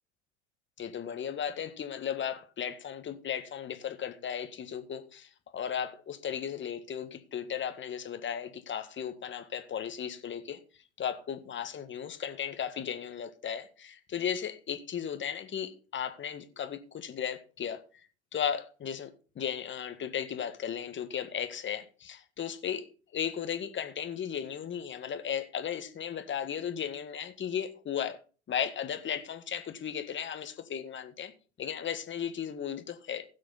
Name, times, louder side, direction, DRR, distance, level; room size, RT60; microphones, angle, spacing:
voice 1, 0.8-10.6 11.0-17.8 18.3-19.1 19.4-22.9 23.1-28.2 28.5-31.3 31.6-33.3, left 8 dB, 35° left, 1.8 m, -35 dB
16.5 x 6.3 x 4.1 m
hypercardioid pair, 70°, 34 cm